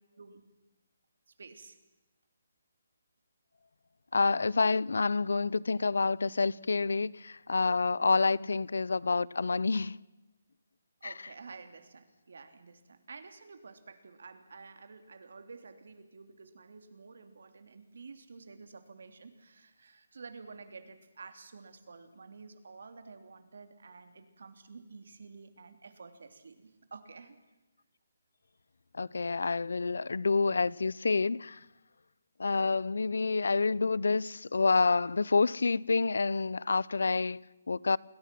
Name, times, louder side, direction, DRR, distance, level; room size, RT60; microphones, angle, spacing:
voice 1, 0.1-0.5 1.4-1.8 11.0-27.4, right 4 dB, 55° right, 2.9 m, -50 dB
voice 2, 4.1-10.0 11.0-11.1 28.9-31.6 32.4-38.0, left 4 dB, 85° left, 0.7 m, -28 dB
29.0 x 21.0 x 6.1 m
hypercardioid pair, 180°, 0 cm